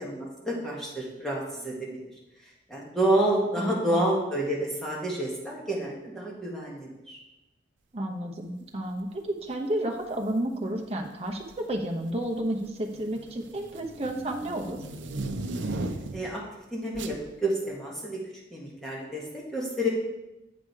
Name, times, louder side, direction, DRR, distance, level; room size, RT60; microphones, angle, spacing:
voice 1, 0.0-2.0 2.7-7.2 16.1-16.4 16.7-17.2 17.4-19.9, right 1 dB, ahead, -5 dB, 1.6 m, -29 dB
voice 2, 3.6-4.0 7.9-14.8, right 1 dB, 35° right, 1 dB, 0.9 m, -31 dB
sound 1, 10.0-10.3 11.3-11.7 12.1-16.4 16.9-17.2, right 2 dB, 85° right, 0.6 m, -36 dB
8.3 x 5.1 x 4.7 m, 0.96 s
head